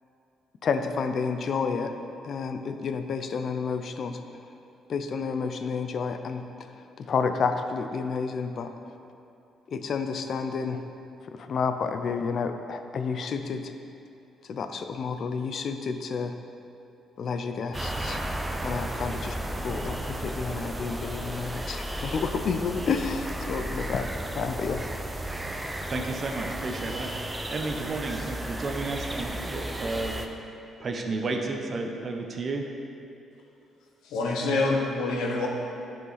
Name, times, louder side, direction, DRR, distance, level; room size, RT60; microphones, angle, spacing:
voice 1, 0.6-1.9 2.2-4.2 4.9-6.5 6.7-8.7 9.7-10.8 11.3-13.7 14.5-16.4 17.2-18.2 18.6-19.4 19.6-24.1 24.3-24.8, left 5 dB, 55° left, 7 dB, 0.6 m, -30 dB
sound 1, 17.7-30.3, right 1 dB, 15° right, 0.7 m, -34 dB
voice 2, 25.9-30.2 30.8-32.7, right 3 dB, 45° right, 3 dB, 0.8 m, -32 dB
voice 3, 34.0-35.5, left 3 dB, 90° left, -1 dB, 1.1 m, -26 dB
11.0 x 5.1 x 4.1 m, 2.7 s
cardioid pair, 90°, 0 cm